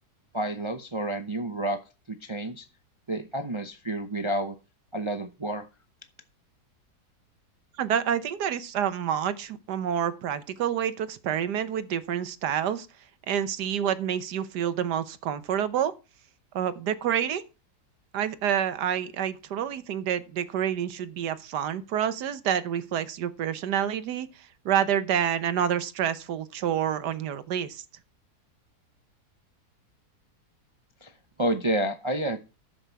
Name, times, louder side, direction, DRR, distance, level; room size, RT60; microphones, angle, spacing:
voice 1, 0.3-1.8 2.1-2.7 3.1-4.6 4.9-5.7 31.0-31.1 31.4-32.4, right 1 dB, 30° right, 0.5 m, -29 dB
voice 2, 7.8-12.9 13.3-15.9 16.5-17.4 18.1-27.8, right 9 dB, 90° right, 1.5 m, -28 dB
11.0 x 7.7 x 4.6 m
omnidirectional pair, 1.7 m